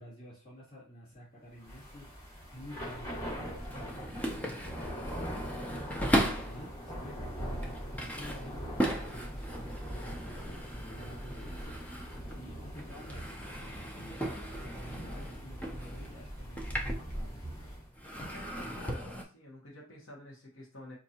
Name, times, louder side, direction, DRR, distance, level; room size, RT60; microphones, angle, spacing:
voice 1, 0.0-17.4, equal, 45° left, -12 dB, 2.0 m, -51 dB
Thunder / Rain, 1.6-17.9, equal, 25° left, 1.8 m, -42 dB
sound 1, 2.7-6.6 7.2-12.5 12.7-17.6 17.9-19.2, equal, 5° left, 0.4 m, -37 dB
voice 2, 18.3-21.0, left 1 dB, 60° left, -3 dB, 1.0 m, -50 dB
4.4 x 2.6 x 2.8 m, 0.38 s
head